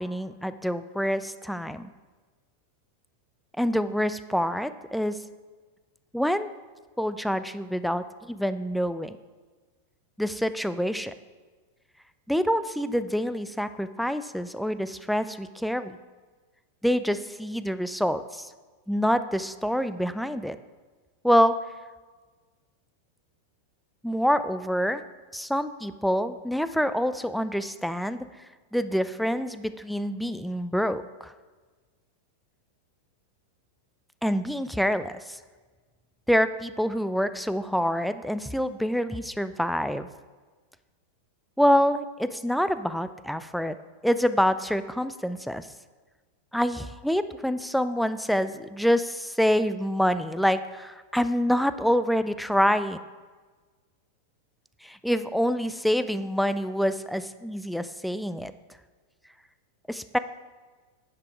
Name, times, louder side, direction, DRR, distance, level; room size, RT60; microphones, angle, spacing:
voice 1, 0.0-1.9 3.6-5.2 6.1-6.5 7.0-9.2 10.2-11.1 12.3-16.0 16.8-18.5 18.9-20.6 21.2-21.6 24.0-25.0 25.3-28.3 28.7-31.3 34.2-35.4 36.3-40.1 41.6-43.8 44.0-45.7 46.5-53.0 54.8-58.5 59.9-60.2, equal, ahead, 12 dB, 0.3 m, -26 dB
9.9 x 6.0 x 4.5 m, 1.4 s
figure-of-eight pair, 90°, 0 cm